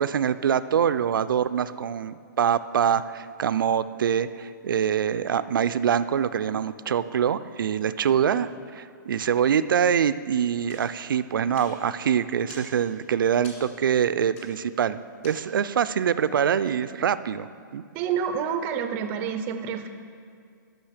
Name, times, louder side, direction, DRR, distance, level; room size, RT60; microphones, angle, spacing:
voice 1, 0.0-17.8, right 8 dB, 85° right, 13 dB, 0.4 m, -24 dB
sound 1, 10.7-15.8, left 2 dB, 40° left, 2.3 m, -50 dB
voice 2, 17.9-19.9, right 7 dB, 15° right, 8 dB, 0.4 m, -28 dB
11.5 x 6.3 x 5.0 m, 2.2 s
hypercardioid pair, 165°, 11 cm